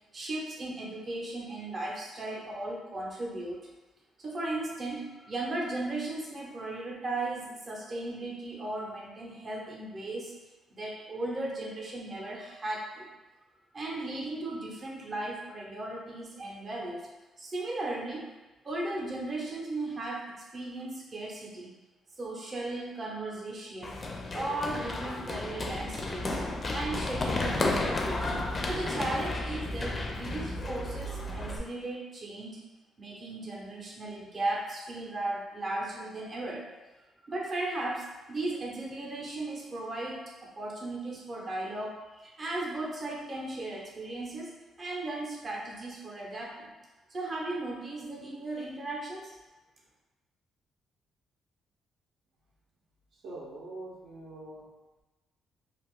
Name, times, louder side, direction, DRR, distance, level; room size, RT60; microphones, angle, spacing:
voice 1, 0.1-3.6 4.2-10.3 10.7-13.1 13.7-17.0 17.4-18.3 18.6-21.7 22.2-24.0 24.3-26.4 26.7-28.3 28.6-32.6 33.0-36.7 37.0-46.7 47.1-49.3, right 2 dB, 35° right, -3 dB, 0.7 m, -36 dB
Run, 23.8-31.6, left 2 dB, 35° left, 0.4 m, -32 dB
voice 2, 53.1-54.6, right 2 dB, 75° right, -4 dB, 0.7 m, -43 dB
2.4 x 2.3 x 3.5 m, 1.1 s
cardioid pair, 90°, 0 cm